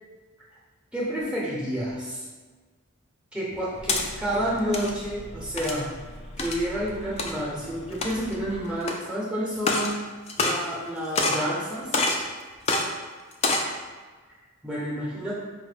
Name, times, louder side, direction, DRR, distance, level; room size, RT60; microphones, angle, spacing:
voice 1, 0.9-2.2 3.3-5.9 6.4-10.1 10.4-11.9 14.6-15.3, equal, 5° right, -7 dB, 0.6 m, -29 dB
sound 1, 3.5-4.0 4.6-4.9 5.6-5.9 6.4-6.6 7.2-7.3 7.9-8.3 8.8-8.9 9.6-9.9 10.3-10.9 11.2-11.5 11.9-12.2 12.7-12.8 13.3-13.7, left 3 dB, 30° left, 0.3 m, -25 dB
sound 2, 3.7-8.9, equal, 60° left, 0.6 m, -43 dB
4.7 x 2.1 x 3.3 m, 1.4 s
head